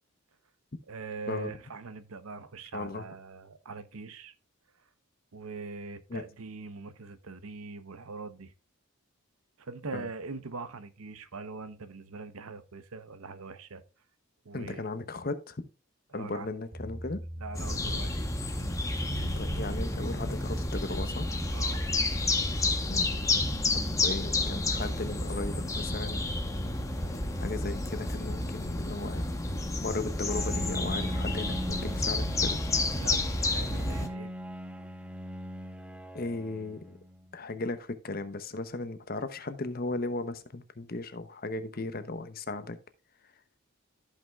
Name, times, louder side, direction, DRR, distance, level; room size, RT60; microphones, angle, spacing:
voice 1, 0.9-4.3 5.3-8.5 9.6-13.8 14.4-14.8 16.1-16.5 17.4-18.2 21.5-21.8 29.6-29.8 32.9-34.3, right 4 dB, 85° right, 0.8 m, -42 dB
voice 2, 2.7-3.0 6.1-6.2 9.9-10.1 14.5-15.7 16.1-17.2 19.2-21.3 22.9-23.1 24.0-26.3 27.4-29.3 29.8-32.6 36.1-37.0 37.3-42.8, left 2 dB, 45° left, 0.8 m, -36 dB
sound 1, 16.7-33.1, equal, 25° right, 2.7 m, -46 dB
sound 2, 17.5-34.1, left 2 dB, 15° left, 0.9 m, -30 dB
Bowed string instrument, 30.2-37.3, equal, 5° right, 0.5 m, -40 dB
14.5 x 5.5 x 2.3 m
head